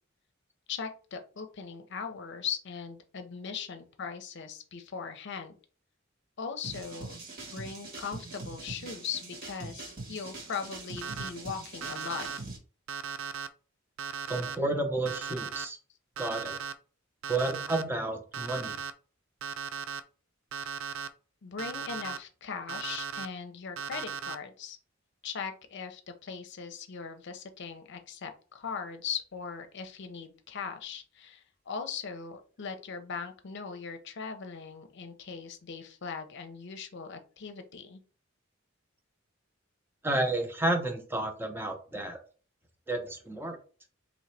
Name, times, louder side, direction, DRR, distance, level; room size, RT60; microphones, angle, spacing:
voice 1, 0.7-5.5 6.4-7.2 7.5-12.3 21.4-24.8 25.2-38.0, left 6 dB, 60° left, 7 dB, 0.6 m, -39 dB
sound 1, 6.6-12.6, right 3 dB, 45° right, 1.4 m, -43 dB
Alarm, 11.0-11.3 11.8-12.4 12.9-13.5 14.0-14.6 15.1-15.6 16.2-16.7 17.2-17.8 18.3-18.9 19.4-20.0 20.5-21.1 21.6-22.2 22.7-23.3 23.8-24.4, right 6 dB, 80° right, 0.4 m, -37 dB
voice 2, 14.3-15.8 16.2-16.5 17.3-18.8 40.0-42.2 42.9-43.6, right 2 dB, 10° right, 4 dB, 0.7 m, -31 dB
3.8 x 3.0 x 3.2 m, 0.38 s
head